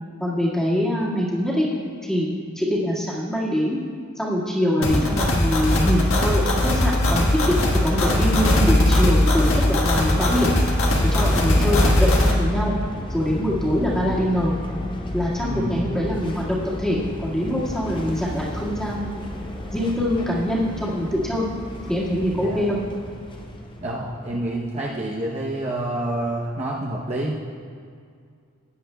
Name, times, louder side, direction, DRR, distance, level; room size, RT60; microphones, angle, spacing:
voice 1, 0.2-1.7 2.0-2.3 2.5-3.8 4.1-10.5 11.1-12.7 13.1-14.5 15.1-19.1 19.7-21.5 21.9-22.8, equal, 5° left, -6 dB, 1.8 m, -24 dB
voice 2, 4.7-5.2 11.5-11.8 13.8-13.9 15.4-15.8 22.4-22.6 23.8-27.3, right 1 dB, 30° right, -4 dB, 0.8 m, -28 dB
sound 1, 4.8-12.3, left 1 dB, 70° left, 1.4 m, -19 dB
sound 2, 10.4-24.6, left 1 dB, 25° left, 0.7 m, -33 dB
16.5 x 10.0 x 2.2 m, 2.2 s
head